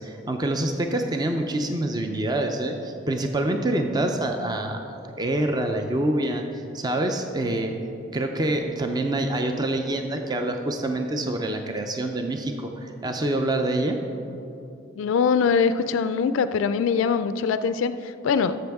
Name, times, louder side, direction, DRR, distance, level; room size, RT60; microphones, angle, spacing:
voice 1, 0.0-7.7 8.1-14.0, right 1 dB, 20° right, 4 dB, 0.5 m, -26 dB
voice 2, 15.0-18.6, left 6 dB, 75° left, 11 dB, 0.3 m, -23 dB
13.0 x 6.7 x 3.5 m, 2.8 s
head